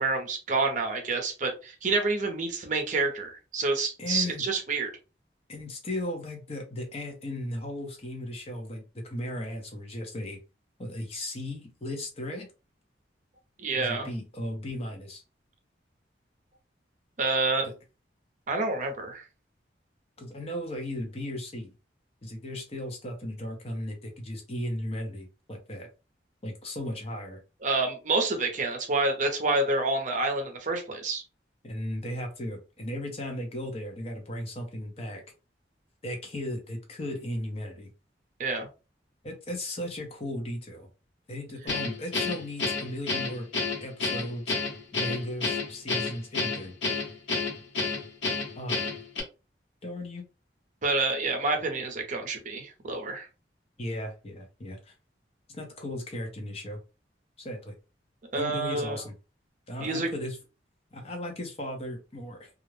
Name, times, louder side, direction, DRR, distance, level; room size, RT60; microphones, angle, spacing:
voice 1, 0.0-4.9 13.6-14.1 17.2-17.7 18.5-19.2 27.6-31.2 38.4-38.7 50.8-53.3 58.3-59.0 59.8-60.1, right 3 dB, 45° right, 4 dB, 0.6 m, -28 dB
voice 2, 4.0-4.4 5.5-10.4 10.8-12.5 13.7-15.2 17.6-17.7 20.2-21.7 22.2-25.9 26.4-27.4 31.6-35.2 36.0-37.9 39.2-40.9 41.3-43.5 43.8-44.5 44.9-46.8 48.6-48.9 49.8-50.2 53.8-54.9 55.5-56.8 57.4-57.7 58.4-59.1 59.7-60.4 60.9-62.5, left 1 dB, 35° left, 3 dB, 0.6 m, -36 dB
Guitar, 41.7-49.2, left 4 dB, 90° left, 0.9 m, -30 dB
2.3 x 2.0 x 3.1 m, 0.31 s
head